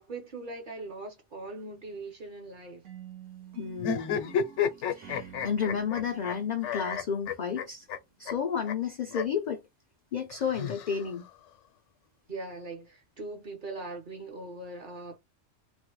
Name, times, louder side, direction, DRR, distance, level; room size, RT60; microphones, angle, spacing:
voice 1, 0.0-2.9 12.3-15.2, right 2 dB, 45° right, 0.9 m, -41 dB
sound 1, 2.8-8.0, right 10 dB, 80° right, 1.2 m, -50 dB
voice 2, 3.6-4.3 4.9-7.9 8.2-9.6 10.1-11.2, left 7 dB, 65° left, 0.4 m, -31 dB
sound 2, 3.8-6.3 6.6-8.0 8.3-8.4 8.7-8.8 9.1-9.2 10.3-11.3, left 7 dB, 80° left, 0.9 m, -31 dB
3.1 x 2.1 x 3.0 m
omnidirectional pair, 1.2 m